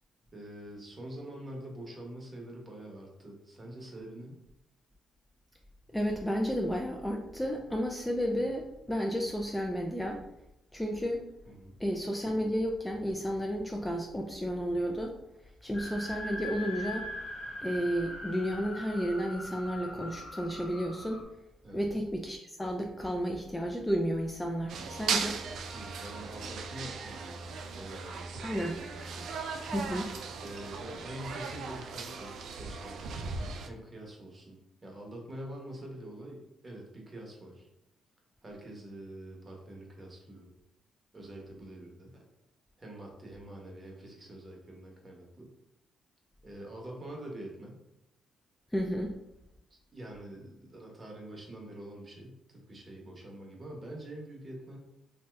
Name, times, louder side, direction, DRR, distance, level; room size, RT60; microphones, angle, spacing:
voice 1, 0.3-4.4 11.4-11.7 21.6-21.8 25.7-29.3 30.4-37.7 38.4-40.5 41.1-42.2 42.8-45.5 46.4-47.8 49.7-54.8, right 1 dB, 30° right, 0 dB, 0.9 m, -45 dB
voice 2, 5.9-10.2 10.7-11.2 11.8-15.1 15.6-17.0 17.6-21.2 21.7-25.4 28.4-28.8 29.7-30.1 48.7-49.1, equal, 10° left, 1 dB, 0.3 m, -32 dB
sound 1, 15.7-21.2, left 1 dB, 75° left, 0.9 m, -41 dB
sound 2, 24.7-33.7, right 5 dB, 70° right, 0.3 m, -38 dB
2.7 x 2.2 x 3.2 m, 0.85 s
cardioid pair, 90°, 0 cm